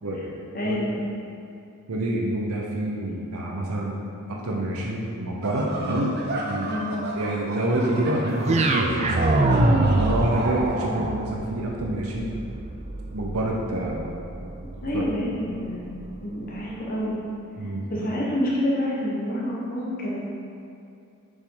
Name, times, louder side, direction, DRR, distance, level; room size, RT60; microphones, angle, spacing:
voice 1, 0.0-0.8 1.9-4.0 4.3-6.2 6.5-6.9 7.1-9.4 9.9-12.3 13.1-14.0 14.9-15.1 17.6-17.9, right 1 dB, 80° right, -2 dB, 0.8 m, -27 dB
voice 2, 0.5-1.0 6.6-7.0 14.8-15.9 16.2-17.2 17.6-20.4, left 1 dB, 40° left, -6 dB, 1.1 m, -28 dB
sound 1, 5.4-10.5, right 2 dB, 45° right, 0.8 m, -34 dB
sound 2, 8.4-16.6, right 2 dB, 30° right, 0.4 m, -25 dB
7.0 x 5.3 x 3.8 m, 2.6 s
head